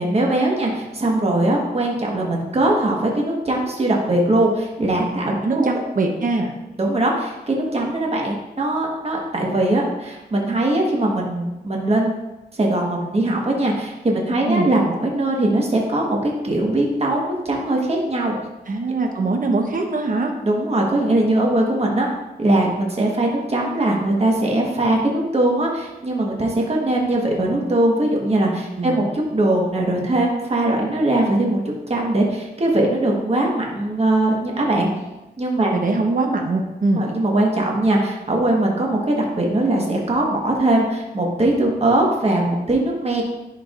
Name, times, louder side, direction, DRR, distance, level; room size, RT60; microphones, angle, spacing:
voice 1, 0.0-5.7 6.8-12.1 12.5-18.3 20.4-22.1 22.4-31.6 31.9-34.9 35.4-35.7 36.9-43.2, right 1 dB, 35° right, -1 dB, 1.3 m, -20 dB
voice 2, 5.4-6.5 14.5-14.7 18.7-20.3 21.5-21.6 28.8-29.0 35.7-37.0, right 3 dB, 55° right, 2 dB, 0.9 m, -22 dB
11.0 x 4.7 x 2.5 m, 0.99 s
wide cardioid pair, 80°, 17 cm